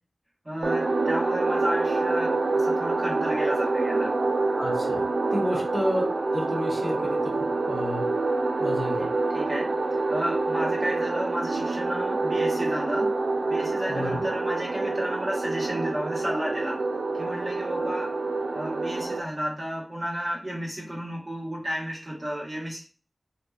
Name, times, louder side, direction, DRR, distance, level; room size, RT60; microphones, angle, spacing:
voice 1, 0.4-4.1 5.4-5.6 9.0-9.1 9.3-9.7 10.1-13.1 13.5-16.8 17.1-18.1 18.5-22.8, equal, 45° right, -4 dB, 1.1 m, -32 dB
sound 1, 0.6-19.2, right 3 dB, 90° right, 0.3 m, -26 dB
voice 2, 4.6-6.0 6.3-8.1 8.6-9.1 13.9-14.2, equal, 15° left, -3 dB, 1.1 m, -31 dB
2.8 x 2.2 x 2.3 m, 0.36 s
wide cardioid pair, 40°, 0 cm